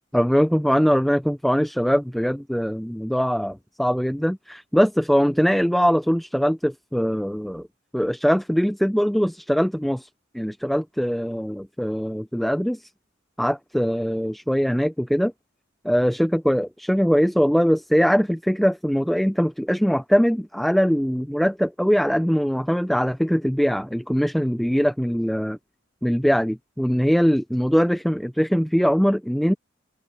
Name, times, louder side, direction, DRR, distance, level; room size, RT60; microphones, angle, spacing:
voice 1, 0.1-7.7 7.9-10.1 10.3-12.8 13.4-15.3 15.8-25.6 26.0-29.5, equal, ahead, 0.4 m, -21 dB
head